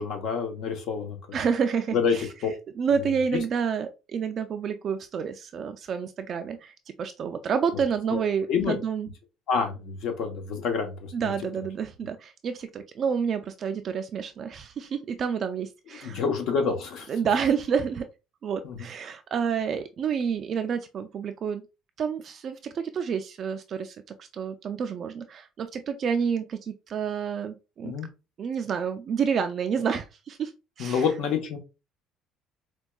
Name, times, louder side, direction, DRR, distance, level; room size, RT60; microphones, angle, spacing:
voice 1, 0.0-1.4 1.9-2.2 2.4-2.5 3.0-3.4 8.1-8.2 8.5-8.8 9.5-11.3 16.0-17.1 18.6-18.9 27.8-28.1 30.8-31.6, left 6 dB, 65° left, 0.9 m, -28 dB
voice 2, 1.3-2.3 2.8-9.1 11.1-16.2 17.1-18.1 18.4-21.6 22.0-27.9 28.4-30.5 30.8-31.1, right 6 dB, 40° right, 0.3 m, -29 dB
4.4 x 2.2 x 2.3 m
cardioid pair, 125°, 0 cm